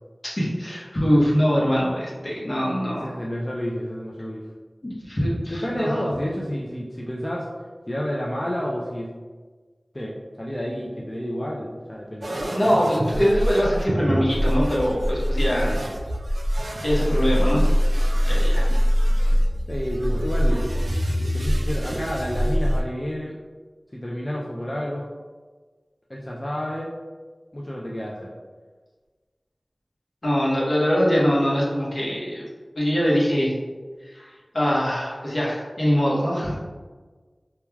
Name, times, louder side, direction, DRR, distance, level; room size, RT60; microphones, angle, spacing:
voice 1, 0.3-3.1 4.8-6.0 12.5-15.8 16.5-17.6 18.3-18.7 30.2-32.4 32.7-33.5 34.0-36.6, equal, 60° left, -6 dB, 0.8 m, -23 dB
voice 2, 2.9-4.4 5.5-7.5 7.9-9.1 9.9-12.6 19.7-20.6 21.3-23.4 23.9-25.1 26.1-26.9 27.5-28.3, equal, 30° left, -3 dB, 0.3 m, -30 dB
sound 1, 12.2-22.8, equal, 65° right, 0.3 m, -23 dB
3.1 x 2.2 x 2.2 m, 1.4 s
wide cardioid pair, 45°, 0 cm